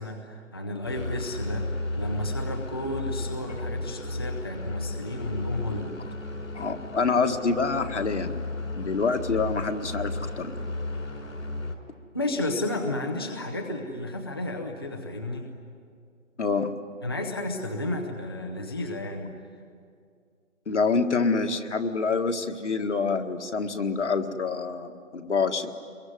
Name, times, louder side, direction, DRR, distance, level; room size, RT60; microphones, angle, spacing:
voice 1, 0.0-6.0 12.1-15.5 17.0-19.3, left 1 dB, 20° left, 1 dB, 0.8 m, -32 dB
sound 1, 0.8-11.7, left 2 dB, 90° left, 5.2 m, -34 dB
voice 2, 6.5-8.4 8.8-10.5 16.4-16.7 20.7-25.7, left 4 dB, 60° left, 5 dB, 1.9 m, -26 dB
25.0 x 22.5 x 9.5 m, 2.3 s
hypercardioid pair, 175°, 39 cm